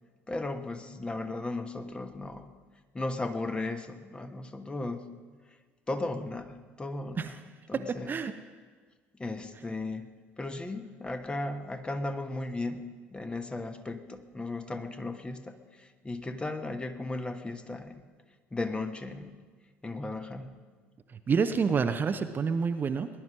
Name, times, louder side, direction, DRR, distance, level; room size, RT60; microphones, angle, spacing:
voice 1, 0.3-2.5 2.9-5.1 5.9-7.4 7.7-8.2 9.2-18.0 18.5-19.4 19.8-20.5, left 2 dB, 15° left, 8 dB, 1.2 m, -36 dB
voice 2, 7.7-8.3 21.3-23.1, right 5 dB, 30° right, 8 dB, 0.7 m, -28 dB
19.0 x 11.0 x 6.1 m, 1.5 s
figure-of-eight pair, 60°, 6 cm